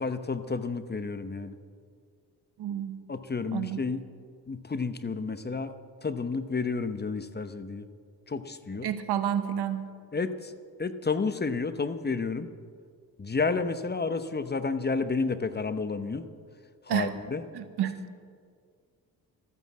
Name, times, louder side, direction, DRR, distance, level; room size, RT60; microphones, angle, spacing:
voice 1, 0.0-1.6 3.1-4.0 4.5-5.7 6.0-7.9 8.3-8.9 10.1-10.5 10.8-12.5 13.2-16.3 16.9-17.4, left 4 dB, 25° left, 11 dB, 0.9 m, -31 dB
voice 2, 2.6-3.0 3.5-3.8 8.8-9.9 16.9-17.1 17.5-18.0, right 10 dB, 80° right, 10 dB, 1.1 m, -30 dB
13.5 x 9.4 x 7.5 m, 2.1 s
supercardioid pair, 60°, 39 cm